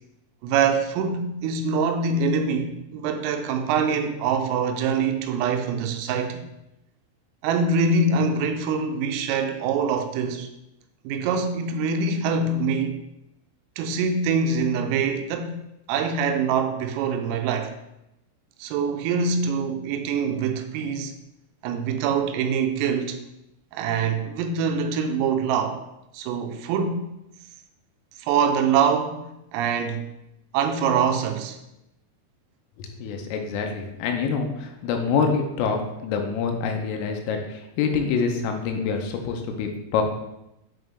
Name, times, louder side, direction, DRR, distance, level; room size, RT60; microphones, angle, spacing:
voice 1, 0.4-6.4 7.4-10.5 11.0-13.0 13.8-15.6 15.9-17.7 18.6-21.1 21.6-23.2 23.7-25.8 26.1-27.0 28.2-30.1 30.5-31.6, right 5 dB, 85° right, 3.3 m, -24 dB
voice 2, 32.8-40.0, left 5 dB, 85° left, 3.3 m, -26 dB
10.0 x 4.0 x 3.3 m
omnidirectional pair, 5.9 m